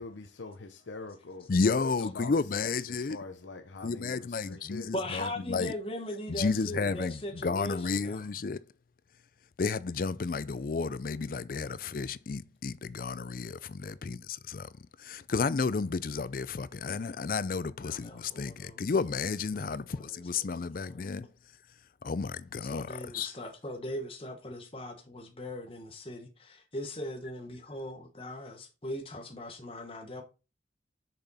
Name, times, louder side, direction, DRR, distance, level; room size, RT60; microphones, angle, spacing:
voice 1, 0.0-1.5 2.0-4.9, left 3 dB, 90° left, 0.8 m, -44 dB
voice 2, 1.5-3.2 3.8-5.7 6.3-8.6 9.6-14.7 15.0-21.3 22.0-23.3, left 4 dB, 50° left, 0.4 m, -32 dB
voice 3, 4.9-8.2 17.8-18.9 19.5-21.0 22.7-30.2, left 1 dB, 30° left, 1.1 m, -40 dB
6.7 x 6.1 x 4.1 m
head